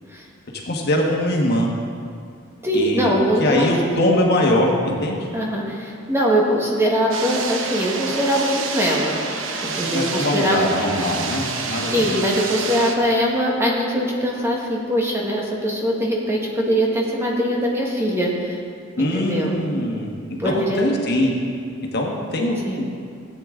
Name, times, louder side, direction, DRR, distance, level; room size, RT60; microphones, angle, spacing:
voice 1, 0.6-1.7 2.7-3.1 3.4-5.2 9.9-12.2 19.0-20.1 20.4-21.3 21.9-22.9, left 1 dB, 55° left, 0 dB, 1.5 m, -22 dB
voice 2, 2.6-3.7 5.3-9.1 9.8-10.6 11.9-18.6 19.1-19.5 20.4-20.8 22.7-22.8, equal, 15° right, -3 dB, 1.4 m, -21 dB
sound 1, 7.1-13.0, right 4 dB, 70° right, 1.0 m, -28 dB
15.5 x 9.0 x 3.8 m, 2.3 s
head